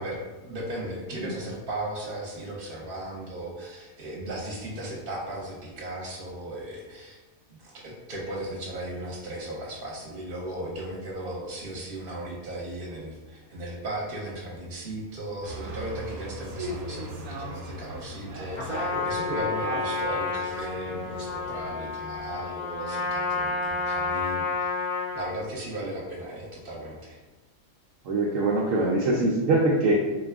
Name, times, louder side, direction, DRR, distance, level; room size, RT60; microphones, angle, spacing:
voice 1, 0.0-7.2 7.5-24.8 25.1-27.2, right 1 dB, 45° right, -3 dB, 1.0 m, -36 dB
sound 1, 15.4-21.7, right 1 dB, 90° right, 1.2 m, -37 dB
Trumpet, 18.5-25.4, left 3 dB, 40° left, 0.4 m, -30 dB
voice 2, 28.1-29.9, right 2 dB, 70° right, -3 dB, 0.9 m, -23 dB
4.1 x 2.3 x 3.4 m, 1.2 s
omnidirectional pair, 1.5 m